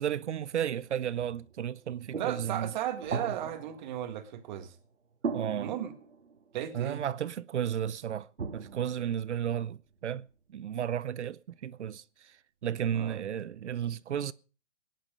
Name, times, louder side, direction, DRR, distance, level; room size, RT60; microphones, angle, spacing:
voice 1, 0.0-2.7 5.3-5.7 6.7-8.3 8.5-12.4 12.6-14.3, right 9 dB, 70° right, 0.8 m, -33 dB
sound 1, 0.7-4.9 5.2-6.7 7.9-9.9, right 5 dB, 90° right, 2.3 m, -40 dB
voice 2, 2.2-4.8 5.6-5.9 6.5-7.0 12.9-13.2, right 11 dB, 40° right, 2.1 m, -35 dB
18.0 x 10.5 x 5.2 m
hypercardioid pair, 145°, 36 cm